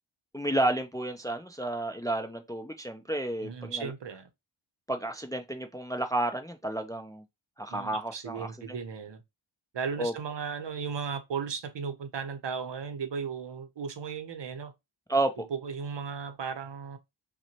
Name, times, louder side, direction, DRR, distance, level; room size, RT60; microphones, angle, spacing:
voice 1, 0.3-3.9 4.9-7.2 7.6-8.8 10.0-10.1 15.1-15.3, right 1 dB, 10° left, 0.4 m, -31 dB
voice 2, 3.4-4.3 7.7-9.2 9.7-14.7 15.4-17.0, right 6 dB, 60° right, 0.7 m, -36 dB
5.7 x 2.2 x 2.8 m
wide cardioid pair, 65°, 48 cm